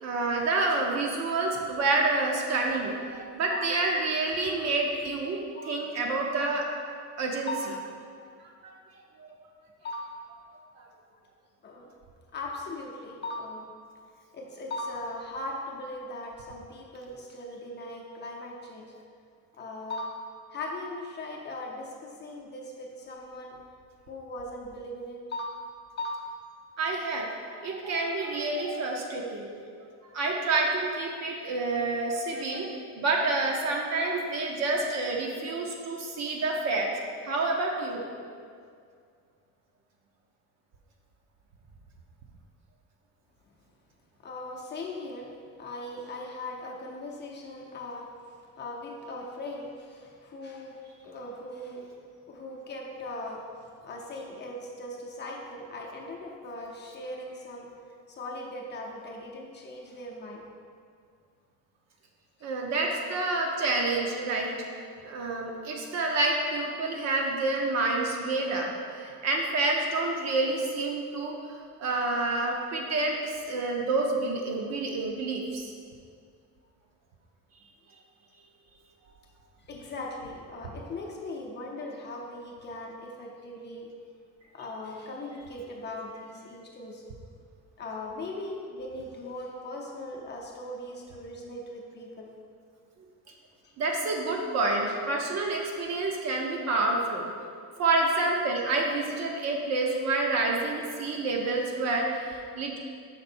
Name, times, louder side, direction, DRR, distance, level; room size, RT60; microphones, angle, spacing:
voice 1, 0.0-5.4 5.7-6.6 7.2-7.5 8.6-8.7 9.2-9.4 10.8-10.9 26.8-29.5 30.1-36.9 37.3-38.0 62.4-75.7 93.8-97.3 97.8-102.8, right 3 dB, 50° right, 0 dB, 0.8 m, -28 dB
voice 2, 9.8-10.2 11.6-11.9 12.3-13.7 14.3-18.9 19.6-20.2 20.5-23.6 24.1-25.6 26.0-26.3 44.2-48.1 48.6-51.9 52.3-57.7 58.1-60.5 62.8-63.0 63.6-63.7 66.3-66.4 79.6-83.9 84.5-87.0 87.8-92.3 93.6-93.7 98.1-98.2, left 1 dB, 30° left, -1 dB, 0.7 m, -39 dB
5.9 x 3.8 x 4.3 m, 2.2 s
cardioid pair, 160°, 33 cm